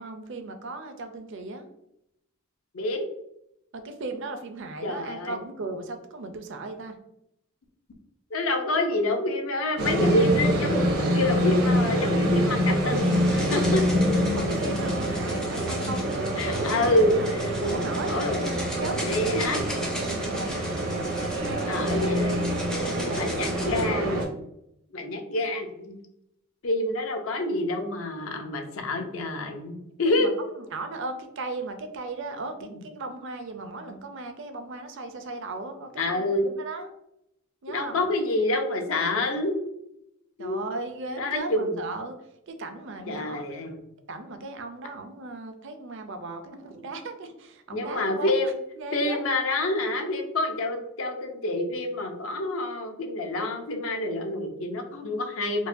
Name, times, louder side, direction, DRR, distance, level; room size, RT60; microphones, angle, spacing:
voice 1, 0.0-1.7 3.7-7.0 8.6-8.7 14.3-17.3 17.6-19.4 19.9-20.5 21.4-23.5 28.9-29.1 30.0-36.9 37.6-38.1 40.4-42.2 42.5-43.5 44.1-49.2, right 2 dB, 60° right, 7 dB, 0.5 m, -37 dB
voice 2, 2.7-3.1 4.8-5.4 8.3-13.8 16.4-17.8 18.1-18.4 19.0-19.6 21.7-22.4 23.0-24.3 24.9-26.0 26.6-30.3 36.0-36.5 37.7-39.6 40.4-40.6 41.2-41.8 43.1-43.8 47.7-48.6 48.9-55.7, left 1 dB, 70° left, 4 dB, 0.6 m, -27 dB
sound 1, 9.8-24.3, equal, 80° right, 0.8 m, -26 dB
sound 2, 12.9-23.9, left 1 dB, 5° left, 0.4 m, -39 dB
4.5 x 2.2 x 2.6 m, 0.80 s
head